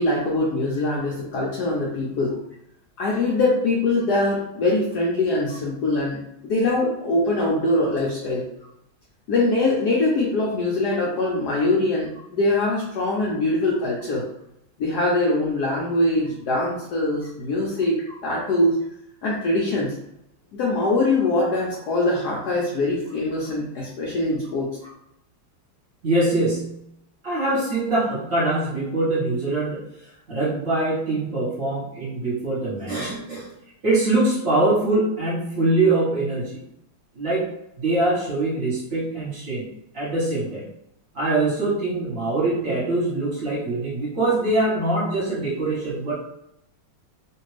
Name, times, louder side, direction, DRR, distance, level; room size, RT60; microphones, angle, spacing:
voice 1, 0.0-2.4 3.0-8.4 9.3-14.3 14.8-18.8 19.2-19.9 20.5-24.7, left 2 dB, 70° left, -4 dB, 1.0 m, -23 dB
voice 2, 26.0-26.7 27.2-29.8 30.3-33.5 33.8-36.6 37.1-37.4 37.8-39.7 39.9-40.6 41.1-46.1, right 2 dB, 45° right, -8 dB, 1.4 m, -23 dB
3.2 x 2.5 x 3.2 m, 0.80 s
omnidirectional pair, 2.3 m